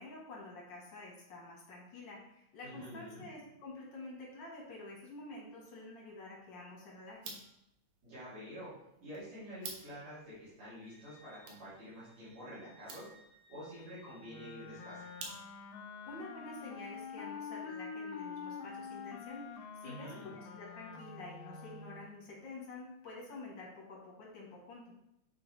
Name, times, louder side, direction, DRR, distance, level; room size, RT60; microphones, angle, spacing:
voice 1, 0.0-7.4 16.1-24.9, left 2 dB, 60° left, -3 dB, 1.3 m, -49 dB
voice 2, 2.6-3.3 8.0-8.7 9.0-13.1 13.5-15.1 19.8-20.4, equal, 65° right, -14 dB, 3.9 m, -48 dB
sound 1, 7.1-15.8, right 4 dB, 80° right, 2.4 m, -53 dB
Wind instrument woodwind instrument, 10.8-15.3, equal, 5° right, 1.0 m, -63 dB
Wind instrument woodwind instrument 2, 14.3-22.1, left 6 dB, 85° left, 1.4 m, -46 dB
8.5 x 3.8 x 3.1 m, 0.84 s
omnidirectional pair, 3.4 m